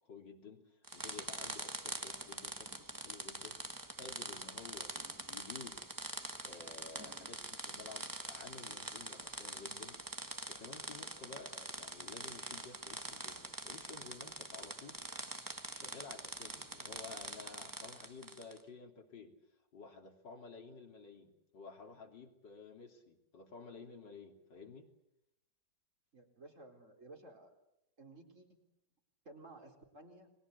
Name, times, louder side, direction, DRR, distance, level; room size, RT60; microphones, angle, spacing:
voice 1, 0.0-4.9 5.3-5.9 6.4-10.0 10.5-15.0 15.7-19.3 19.7-24.9, left 4 dB, 75° left, 5 dB, 3.7 m, -53 dB
sound 1, 0.8-18.6, right 2 dB, 10° right, 1.3 m, -45 dB
voice 2, 26.1-27.5 28.0-28.5 29.2-30.3, right 2 dB, 45° right, 3 dB, 4.5 m, -55 dB
30.0 x 21.5 x 8.2 m, 0.86 s
omnidirectional pair, 1.9 m